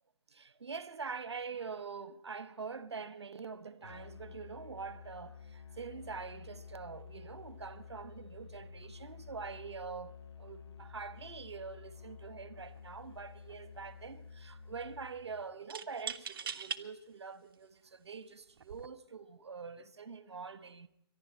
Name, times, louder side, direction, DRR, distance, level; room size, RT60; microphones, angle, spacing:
voice 1, 0.3-20.9, right 5 dB, 80° right, 1.1 m, -45 dB
Musical instrument, 3.8-15.5, left 6 dB, 85° left, 1.0 m, -51 dB
sound 1, 12.6-12.8 13.1-13.8 15.7-16.8 17.5-17.6 18.5-18.9, right 7 dB, 55° right, 0.9 m, -41 dB
25.0 x 11.5 x 4.3 m
figure-of-eight pair, 135°, 14 cm